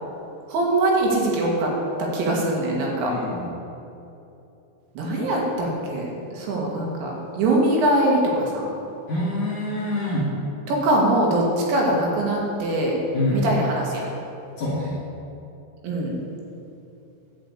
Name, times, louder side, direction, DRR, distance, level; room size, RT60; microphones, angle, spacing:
voice 1, 0.5-1.7 2.0-3.1 5.0-8.7 10.7-13.0 13.3-14.1 15.8-16.2, right 1 dB, 70° right, -2 dB, 3.8 m, -22 dB
voice 2, 3.0-3.5 5.1-5.3 9.1-10.3 13.1-13.4 14.6-15.0, left 1 dB, 50° left, -7 dB, 2.7 m, -26 dB
11.5 x 5.5 x 8.3 m, 2.9 s
omnidirectional pair, 5.6 m